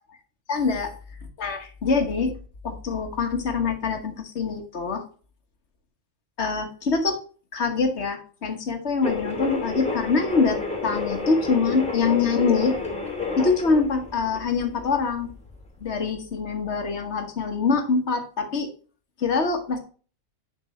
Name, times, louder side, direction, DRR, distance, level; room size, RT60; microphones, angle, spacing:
voice 1, 0.5-0.9 1.4-2.4 2.6-5.0 6.4-7.2 7.5-12.8 13.4-15.3 15.8-18.7 19.2-19.8, left 4 dB, 55° left, 5 dB, 1.5 m, -24 dB
sound 1, 9.0-15.9, left 3 dB, 5° left, 2.2 m, -30 dB
10.0 x 5.3 x 3.2 m, 0.39 s
omnidirectional pair, 1.4 m